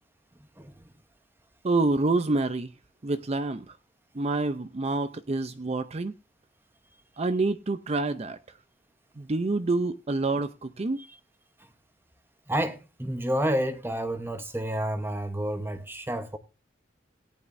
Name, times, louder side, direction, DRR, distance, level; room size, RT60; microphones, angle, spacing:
voice 1, 1.6-2.7 3.0-3.8 4.1-6.1 7.2-8.4 9.2-11.0, right 3 dB, 35° right, 0.6 m, -27 dB
voice 2, 12.5-16.4, right 1 dB, 15° right, 1.0 m, -30 dB
17.5 x 10.5 x 2.6 m
head